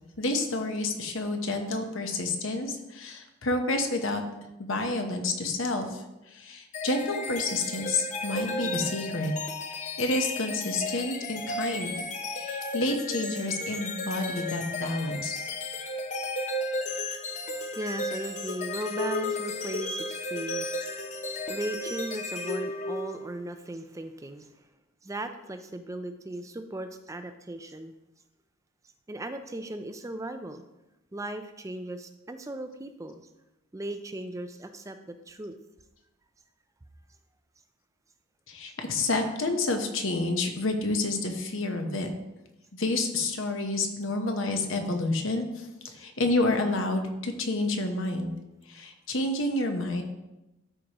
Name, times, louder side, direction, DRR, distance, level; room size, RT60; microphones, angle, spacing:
voice 1, 0.2-4.2 4.6-6.0 6.3-9.3 9.7-11.9 12.3-15.4 38.5-42.1 42.7-48.3 48.7-50.0, left 2 dB, 60° left, 5 dB, 1.0 m, -29 dB
sound 1, 6.7-23.4, left 2 dB, 35° left, 0.6 m, -34 dB
voice 2, 17.5-24.5 25.0-27.9 29.1-30.6 31.1-33.2 33.7-35.5, right 1 dB, 15° right, 8 dB, 0.4 m, -37 dB
12.5 x 4.9 x 3.0 m, 0.98 s
head